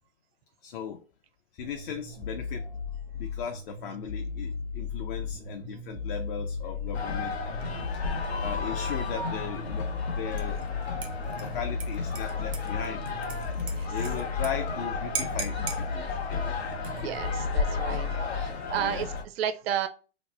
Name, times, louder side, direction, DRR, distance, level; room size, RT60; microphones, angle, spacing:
voice 1, 0.6-1.0 1.5-2.6 3.1-7.3 8.4-10.6 11.4-13.3 13.9-16.6 17.0-17.1 17.6-17.8 18.8-19.1, left 8 dB, 55° left, 5 dB, 0.5 m, -38 dB
sound 1, 1.6-18.5, left 5 dB, 40° left, 0.9 m, -35 dB
sound 2, 6.9-19.2, left 4 dB, 80° left, 0.9 m, -34 dB
Dishes pots and pans / Liquid, 10.4-10.7 11.0-14.5 14.8-14.9 15.2-15.8 16.7-17.2, right 6 dB, 15° right, 0.4 m, -38 dB
voice 2, 17.0-19.9, right 9 dB, 70° right, 9 dB, 0.5 m, -33 dB
3.1 x 2.1 x 4.0 m, 0.35 s
hypercardioid pair, 120°, 32 cm